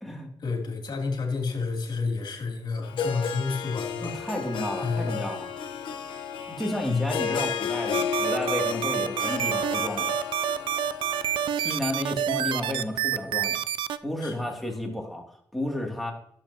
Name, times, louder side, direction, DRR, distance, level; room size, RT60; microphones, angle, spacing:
voice 1, 0.4-4.2 4.8-5.2 6.8-7.1 11.5-11.9 14.2-14.6, left 4 dB, 60° left, 1 dB, 2.9 m, -30 dB
Harp, 2.8-11.8, left 7 dB, 85° left, 1.0 m, -33 dB
voice 2, 4.0-5.5 6.5-10.1 11.5-13.7 14.0-16.1, left 1 dB, ahead, 0 dB, 2.5 m, -32 dB
sound 1, 7.9-14.0, right 10 dB, 80° right, 0.4 m, -27 dB
12.0 x 7.5 x 2.9 m, 0.66 s
cardioid pair, 75°, 8 cm